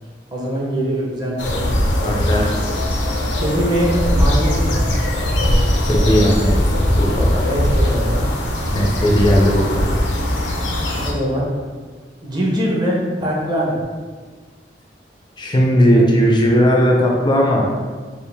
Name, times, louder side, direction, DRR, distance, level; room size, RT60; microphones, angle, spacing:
voice 1, 0.3-1.7 3.3-4.8 7.4-8.3 11.0-11.5 12.2-13.8 16.0-16.1, equal, 25° right, -4 dB, 0.8 m, -22 dB
sound 1, 1.4-11.1, left 1 dB, 80° left, 0.7 m, -19 dB
voice 2, 2.0-2.5 5.8-7.4 8.7-9.9 15.4-17.7, equal, 25° left, -1 dB, 0.5 m, -17 dB
4.4 x 2.5 x 3.4 m, 1.5 s
head